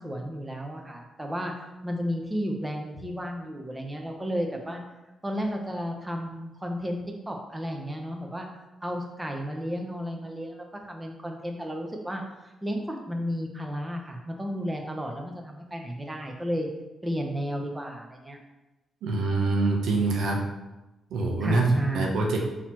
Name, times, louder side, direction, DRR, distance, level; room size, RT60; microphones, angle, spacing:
voice 1, 0.0-1.5 1.8-4.8 5.2-8.5 8.8-12.2 12.6-16.7 17.0-18.4 21.4-22.1, equal, 15° right, 2 dB, 0.8 m, -33 dB
voice 2, 19.0-20.4 21.1-21.7 21.9-22.4, right 3 dB, 80° right, 0 dB, 0.8 m, -25 dB
4.0 x 3.0 x 4.4 m, 1.0 s
supercardioid pair, 60°, 0 cm